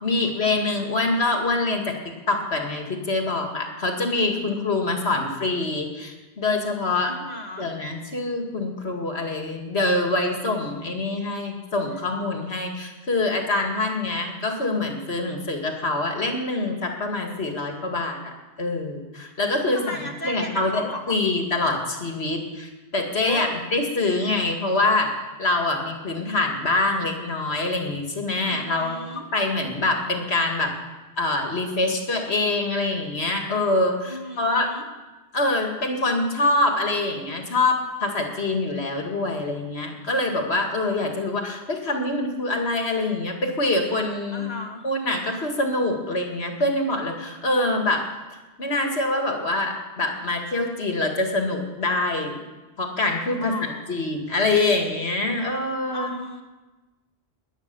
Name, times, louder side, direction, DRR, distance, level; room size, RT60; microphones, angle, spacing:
voice 1, 0.0-7.1 7.6-18.3 18.6-20.0 20.2-25.1 25.4-29.0 29.3-30.7 31.2-34.7 35.3-44.5 44.8-48.1 48.6-52.4 52.8-56.1, left 2 dB, 70° left, 3 dB, 2.5 m, -25 dB
voice 2, 7.0-7.7 19.7-21.2 23.3-23.6 28.4-29.3 34.0-34.9 44.3-44.8 53.4-54.0 55.9-56.4, left 1 dB, 40° left, 3 dB, 2.1 m, -35 dB
20.0 x 8.9 x 7.0 m, 1.2 s
omnidirectional pair, 1.1 m